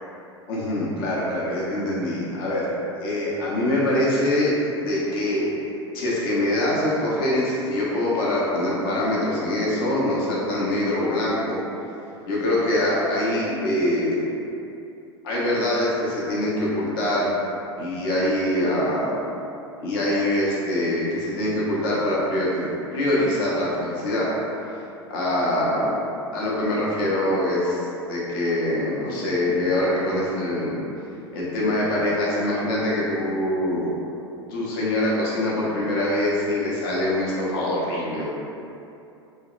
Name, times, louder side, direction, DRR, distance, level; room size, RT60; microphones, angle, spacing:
voice 1, 0.5-2.7 3.0-5.4 5.9-11.6 12.3-14.3 15.2-17.3 17.8-19.2 19.8-24.3 25.1-25.9 26.3-27.8 28.1-30.8 31.3-33.9 34.5-38.3, left 1 dB, 55° left, -6 dB, 0.7 m, -24 dB
2.7 x 2.1 x 2.4 m, 2.7 s
figure-of-eight pair, 85°, 14 cm